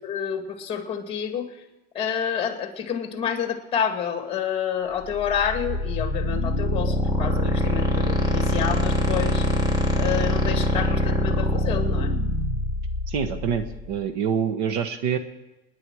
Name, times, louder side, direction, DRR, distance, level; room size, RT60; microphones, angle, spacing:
voice 1, 0.0-1.5 1.9-9.5 10.0-12.1, left 8 dB, 20° left, 5 dB, 2.1 m, -28 dB
sound 1, 5.0-13.9, left 1 dB, 10° right, 1.7 m, -24 dB
voice 2, 13.1-15.2, right 7 dB, 55° right, 9 dB, 1.2 m, -26 dB
28.0 x 9.8 x 4.8 m, 1.1 s
supercardioid pair, 160°, 31 cm